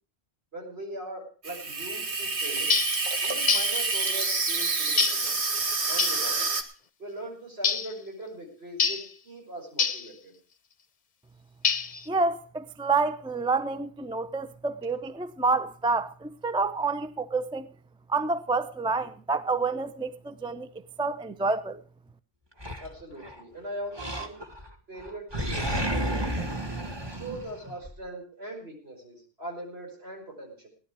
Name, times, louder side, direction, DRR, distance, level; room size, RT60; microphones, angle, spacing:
voice 1, 0.5-2.7 3.2-5.4 5.9-6.5 7.0-10.3 22.8-24.4 24.9-26.5 27.0-30.7, right 1 dB, 70° right, 5.5 m, -40 dB
Water tap faucet / Sink (filling or washing), 1.4-6.6, right 3 dB, 90° right, 1.8 m, -28 dB
sound 1, 2.7-3.0 3.5-3.8 5.0-5.3 6.0-6.2 7.6-7.9 8.8-9.1 9.8-10.1 11.6-12.1, left 6 dB, 45° left, 0.8 m, -26 dB
voice 2, 12.1-17.7 18.1-21.8, right 3 dB, 5° right, 0.5 m, -28 dB
Animal, 22.6-23.4 23.9-24.7 25.0-28.0, right 1 dB, 25° right, 1.6 m, -32 dB
17.0 x 11.5 x 4.7 m
omnidirectional pair, 1.1 m